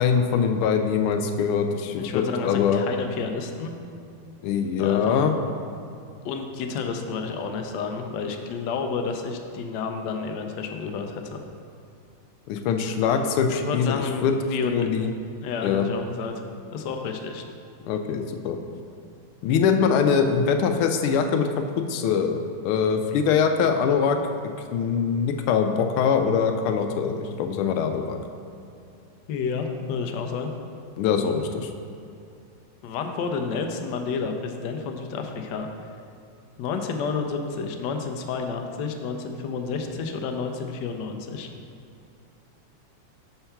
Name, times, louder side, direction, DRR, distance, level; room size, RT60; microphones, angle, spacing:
voice 1, 0.0-2.8 4.4-5.3 12.5-14.3 14.6-15.1 15.6-15.9 17.9-18.6 19.4-22.4 22.6-24.2 24.7-28.2 31.0-31.7, left 6 dB, 90° left, 6 dB, 1.5 m, -23 dB
voice 2, 2.0-3.7 4.8-5.3 6.2-11.4 13.5-14.9 15.4-16.3 16.7-17.4 29.3-30.5 32.8-35.7 36.6-41.5, left 5 dB, 70° left, 4 dB, 1.1 m, -30 dB
5.7 x 4.4 x 5.7 m, 2.5 s
omnidirectional pair, 2.3 m